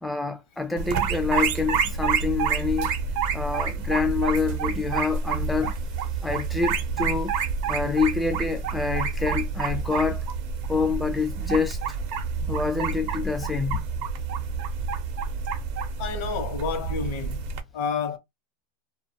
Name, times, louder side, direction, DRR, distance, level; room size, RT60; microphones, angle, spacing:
voice 1, 0.0-2.9 3.3-5.7 6.2-7.3 7.7-10.2 10.7-11.8 12.5-13.9, left 4 dB, 5° left, 0.3 m, -27 dB
sound 1, 0.8-17.6, right 5 dB, 55° right, 0.6 m, -28 dB
voice 2, 16.0-17.4 17.7-18.2, left 5 dB, 55° left, 0.7 m, -30 dB
2.4 x 2.2 x 2.7 m
supercardioid pair, 135°, 0 cm